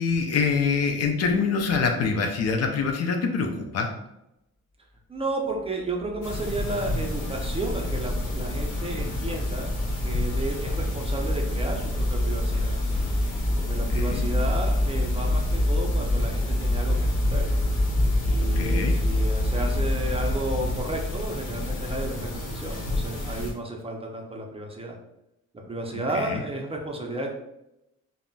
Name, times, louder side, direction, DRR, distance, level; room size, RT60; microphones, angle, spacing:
voice 1, 0.0-3.9 13.9-14.2 18.5-19.0 25.9-26.4, left 5 dB, 55° left, 3 dB, 0.5 m, -25 dB
voice 2, 5.1-9.7 10.0-12.7 13.6-17.4 18.3-25.0 25.7-27.3, right 1 dB, 20° right, 0 dB, 0.5 m, -33 dB
sound 1, 6.0-21.3, left 1 dB, 40° left, 1.3 m, -27 dB
sound 2, 6.2-23.5, left 1 dB, 80° left, 0.9 m, -32 dB
3.7 x 2.1 x 2.2 m, 0.87 s
cardioid pair, 90°, 30 cm